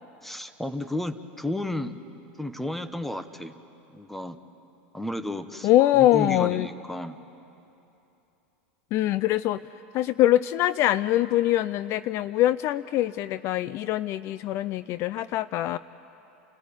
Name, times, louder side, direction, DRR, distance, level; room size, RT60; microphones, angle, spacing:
voice 1, 0.2-1.9 2.4-3.5 3.9-4.4 4.9-5.7 5.9-7.2, left 1 dB, 5° left, 11 dB, 1.2 m, -32 dB
voice 2, 5.6-6.7 8.9-9.6 9.9-15.8, left 14 dB, 50° left, 16 dB, 0.4 m, -23 dB
29.5 x 15.0 x 9.6 m, 2.9 s
supercardioid pair, 110°, 6 cm